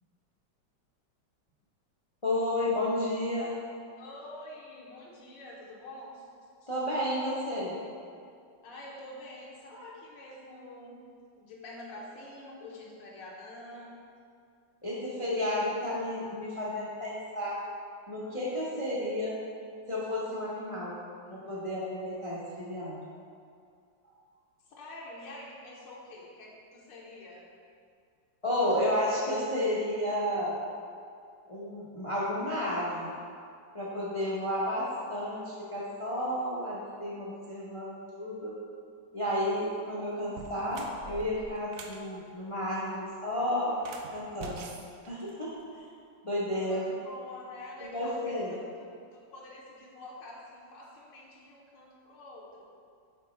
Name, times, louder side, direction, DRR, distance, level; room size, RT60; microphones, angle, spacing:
voice 1, 2.2-3.5 6.7-7.8 14.8-17.6 18.1-19.4 19.9-21.0 21.3-23.0 28.4-30.6 31.5-33.1 33.7-34.8 35.1-38.6 39.1-43.7 44.1-44.7 45.1-45.8 46.2-46.9 47.8-48.5, left 1 dB, 55° left, -7 dB, 0.3 m, -32 dB
voice 2, 4.0-6.3 6.6-6.7 8.6-11.0 11.4-14.0 24.8-27.5 46.7-52.7, left 1 dB, 80° left, -4 dB, 1.5 m, -47 dB
sound 1, 39.4-39.7 40.2-42.0 43.7-45.8, right 4 dB, 75° right, 1.2 m, -46 dB
5.7 x 3.9 x 4.2 m, 2.3 s
omnidirectional pair, 2.0 m